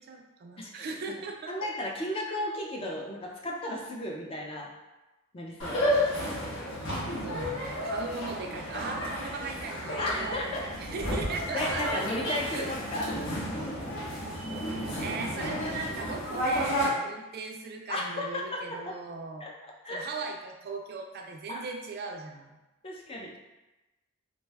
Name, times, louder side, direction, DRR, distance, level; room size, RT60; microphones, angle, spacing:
voice 1, 0.0-1.7 7.2-12.0 12.5-12.7 15.0-19.5 19.9-22.5, right 3 dB, 50° right, 3 dB, 0.3 m, -38 dB
voice 2, 0.6-0.9 1.5-4.7 5.3-5.8 10.0-10.6 11.5-13.4 17.9-18.9 19.4-19.5 19.8-20.0 21.5-21.6 22.8-23.3, left 1 dB, 30° left, -1 dB, 0.4 m, -34 dB
sound 1, 5.6-16.9, equal, 65° left, 0.7 m, -32 dB
2.6 x 2.2 x 3.2 m, 1.0 s
head